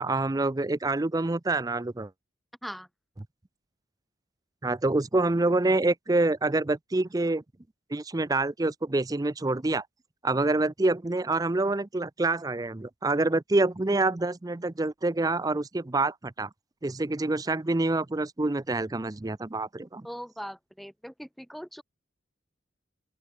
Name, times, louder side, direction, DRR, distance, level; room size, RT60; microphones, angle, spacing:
voice 1, 0.0-2.1 4.6-7.4 7.9-9.8 10.2-16.5 16.8-20.1, right 2 dB, 20° right, 0.5 m, -26 dB
voice 2, 20.0-21.8, equal, ahead, 1.9 m, -40 dB
open air
head